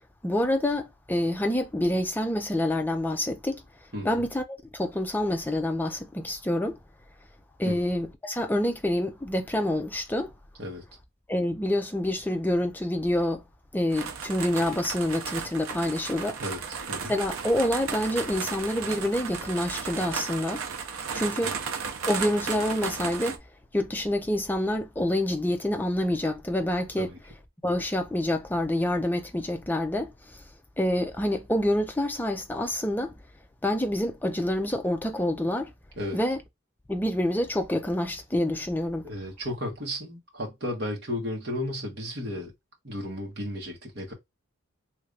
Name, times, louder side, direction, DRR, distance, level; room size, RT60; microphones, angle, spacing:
voice 1, 0.2-3.6 4.0-6.8 7.6-10.3 11.3-13.4 13.7-16.4 17.1-20.6 21.1-21.6 22.1-23.4 23.7-27.1 27.6-30.4 30.8-33.1 33.6-35.7 36.1-36.4 36.9-39.1, left 1 dB, 10° left, 0.4 m, -27 dB
voice 2, 3.9-4.3 7.6-7.8 10.6-10.8 16.4-17.1 21.4-21.5 27.0-27.2 36.0-36.2 39.0-42.5 42.8-44.1, left 1 dB, 50° right, 1.4 m, -34 dB
sound 1, 13.9-23.4, right 6 dB, 75° right, 0.6 m, -34 dB
3.3 x 2.5 x 3.2 m
head